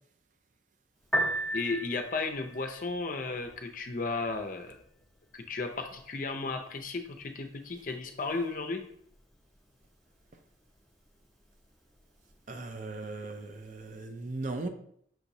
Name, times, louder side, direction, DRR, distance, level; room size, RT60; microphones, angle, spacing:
Piano, 1.0-14.0, right 1 dB, ahead, 0.7 m, -41 dB
voice 1, 1.5-4.8 5.3-8.8, left 3 dB, 45° left, 5 dB, 0.5 m, -34 dB
voice 2, 12.5-14.7, right 3 dB, 40° right, 6 dB, 0.4 m, -38 dB
5.9 x 2.9 x 2.7 m, 0.67 s
head